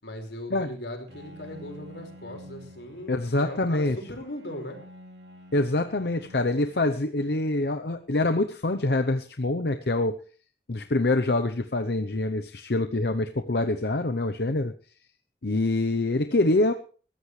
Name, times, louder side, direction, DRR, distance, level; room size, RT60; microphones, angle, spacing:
voice 1, 0.0-4.8, left 1 dB, 90° left, 3 dB, 5.2 m, -38 dB
Bowed string instrument, 1.1-8.2, equal, 85° right, 2.7 m, -50 dB
voice 2, 3.1-4.0 5.5-10.2 10.7-14.7 15.4-16.7, left 2 dB, 65° left, 8 dB, 0.8 m, -25 dB
21.5 x 14.0 x 3.3 m, 0.40 s
head